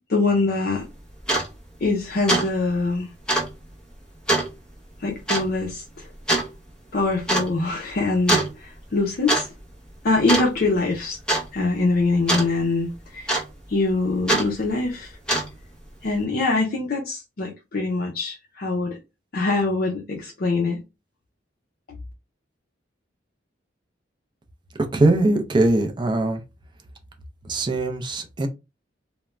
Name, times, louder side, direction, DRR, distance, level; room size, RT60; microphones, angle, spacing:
voice 1, 0.1-0.8 1.8-3.1 5.0-6.1 6.9-9.5 10.0-11.2 11.5-13.4 13.7-15.1 16.0-19.0 19.3-20.8, left 3 dB, 55° left, 0.5 m, -24 dB
sound 1, 0.8-0.9 1.2-1.5 1.8-2.0 2.3-2.5 2.7-2.8 3.3-3.5 4.3-4.5 5.3-5.5 6.3-6.5 7.3-7.5 8.3-8.5 9.1-9.5 9.7-10.0 10.3-10.8 11.3-11.4 12.3-12.5 13.3-13.7 14.3-14.5 15.1-15.6, right 1 dB, 5° left, 0.8 m, -22 dB
voice 2, 24.9-26.4 27.5-28.5, right 2 dB, 25° right, 0.4 m, -21 dB
2.4 x 2.1 x 3.1 m
head